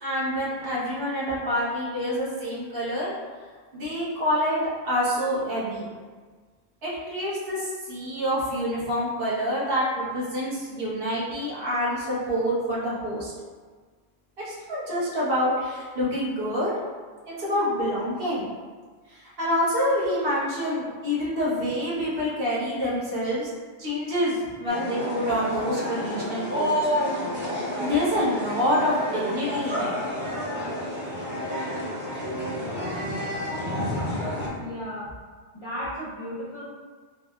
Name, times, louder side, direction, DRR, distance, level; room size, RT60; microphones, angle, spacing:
voice 1, 0.0-3.1 3.7-5.9 6.8-13.3 14.4-16.7 17.2-18.4 19.1-23.5 23.8-26.7 27.8-29.9, equal, 60° right, -8 dB, 1.0 m, -27 dB
sound 1, 24.7-34.5, equal, 15° right, 0.4 m, -29 dB
voice 2, 34.4-35.1 35.5-36.6, equal, 35° left, -10 dB, 0.6 m, -35 dB
3.5 x 2.0 x 2.3 m, 1.5 s
omnidirectional pair, 1.1 m